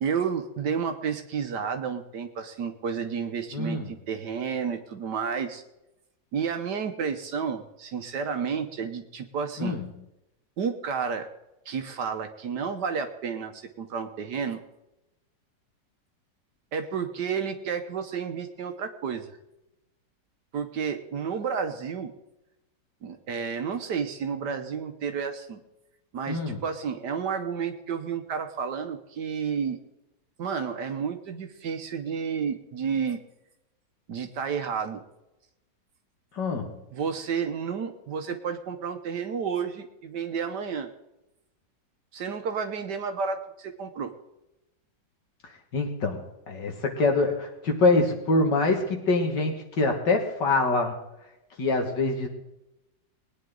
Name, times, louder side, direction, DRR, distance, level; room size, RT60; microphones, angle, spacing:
voice 1, 0.0-5.6 6.3-9.8 10.6-11.3 11.6-14.6 16.7-19.3 20.5-22.1 23.0-25.6 26.1-29.8 30.4-33.2 34.1-35.0 36.9-40.9 42.1-44.1, right 6 dB, 70° right, 6 dB, 1.5 m, -31 dB
voice 2, 3.5-3.9 9.6-9.9 26.3-26.6 36.3-36.7 45.7-50.9 51.6-52.3, left 3 dB, 75° left, 3 dB, 2.6 m, -25 dB
20.5 x 9.6 x 3.8 m, 0.91 s
omnidirectional pair, 1.9 m